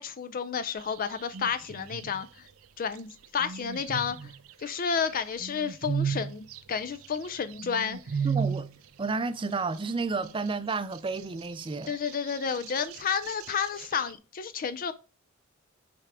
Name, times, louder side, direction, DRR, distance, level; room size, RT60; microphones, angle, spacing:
voice 1, 0.0-2.5 2.8-4.3 4.6-8.3 11.9-14.9, left 6 dB, 45° left, 0.4 m, -31 dB
sound 1, 0.8-2.3 3.2-5.0 5.3-8.8 9.1-9.2 9.7-14.1, right 7 dB, 90° right, 0.6 m, -35 dB
voice 2, 8.2-8.7 9.0-12.0, right 4 dB, 25° right, 0.5 m, -31 dB
8.9 x 3.4 x 4.8 m
head